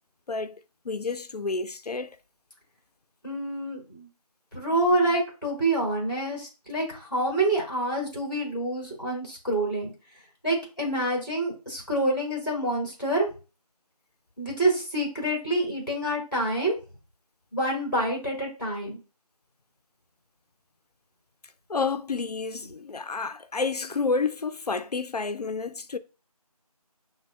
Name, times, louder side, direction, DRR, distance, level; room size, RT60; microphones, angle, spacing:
voice 1, 0.3-2.1 21.7-26.0, left 4 dB, 80° left, 0.4 m, -30 dB
voice 2, 3.2-4.1 4.5-9.9 10.4-13.3 14.4-16.7 17.5-19.0, right 1 dB, 30° left, 1.6 m, -27 dB
5.9 x 2.1 x 2.3 m
figure-of-eight pair, 175°, 20 cm